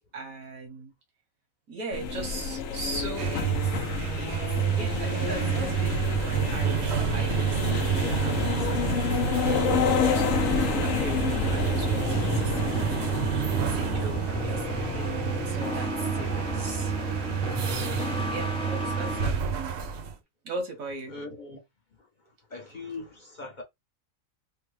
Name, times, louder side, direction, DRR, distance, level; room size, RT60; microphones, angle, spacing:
voice 1, 0.1-0.9 1.7-3.8 4.1-6.8 7.1-14.6 14.9-19.8 20.4-21.1, right 3 dB, 90° right, 1.5 m, -39 dB
sound 1, 1.9-19.2, left 6 dB, 75° left, 1.0 m, -31 dB
sound 2, 3.0-20.2, right 8 dB, 60° right, 0.8 m, -29 dB
sound 3, 9.5-19.3, left 1 dB, 10° left, 0.3 m, -33 dB
voice 2, 21.1-21.6 22.0-22.1 22.5-23.6, left 3 dB, 45° left, 0.7 m, -40 dB
3.4 x 2.1 x 3.1 m
omnidirectional pair, 1.4 m